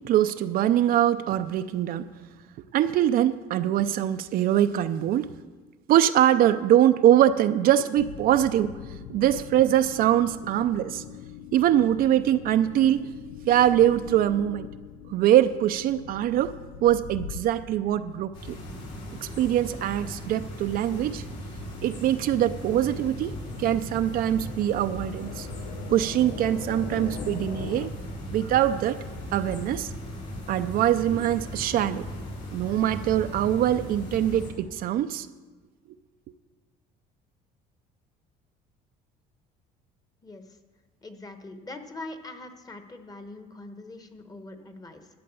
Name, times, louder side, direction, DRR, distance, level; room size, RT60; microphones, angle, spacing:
voice 1, 0.0-2.1 2.7-5.3 5.9-8.7 9.1-11.0 11.5-13.1 13.5-14.7 15.1-16.5 16.8-18.6 19.1-21.2 21.8-25.5 25.9-27.9 28.3-29.0 29.3-29.9 30.5-32.1 32.5-35.3, right 11 dB, 55° right, 10 dB, 0.5 m, -23 dB
sound 1, 8.0-27.9, left 8 dB, 90° left, 0.7 m, -43 dB
sound 2, 18.3-34.5, equal, 70° left, 4.9 m, -38 dB
voice 2, 40.2-40.6 41.0-45.1, left 2 dB, 20° left, 8 dB, 1.2 m, -42 dB
12.0 x 7.7 x 6.9 m, 1.3 s
cardioid pair, 115°, 18 cm